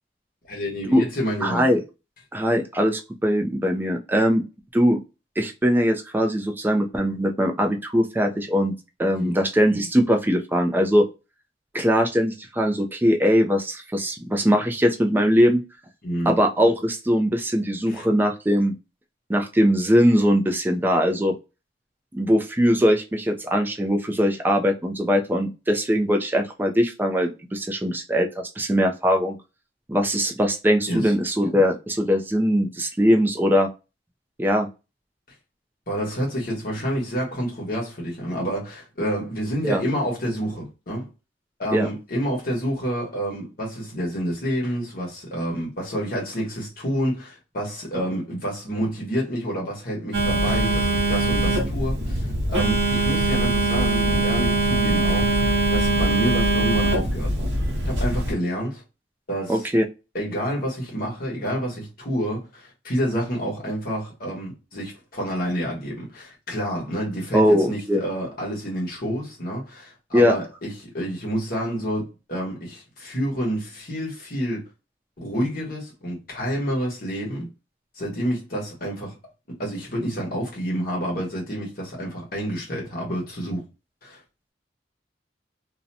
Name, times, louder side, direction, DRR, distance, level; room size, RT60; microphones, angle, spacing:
voice 1, 0.5-1.7 9.1-9.3 16.0-16.3 17.9-18.0 30.9-31.1 35.9-41.1 41.6-55.3 55.7-57.5 57.8-58.8 59.3-59.7 60.1-74.7 75.2-77.5 77.9-79.1 79.6-83.6 84.0-84.2, equal, 55° left, 1.0 m, -28 dB
voice 2, 1.4-1.8 2.3-4.4 4.7-5.0 5.4-8.7 9.0-11.1 11.7-15.6 16.3-18.8 19.3-21.4 22.1-29.4 29.9-33.7 34.4-34.7 39.6-39.8 41.7-41.9 59.5-59.8 67.3-68.0 70.1-70.4, equal, 10° right, 0.4 m, -21 dB
Telephone, 50.1-58.3, right 2 dB, 75° right, 0.8 m, -22 dB
2.5 x 2.1 x 2.6 m
head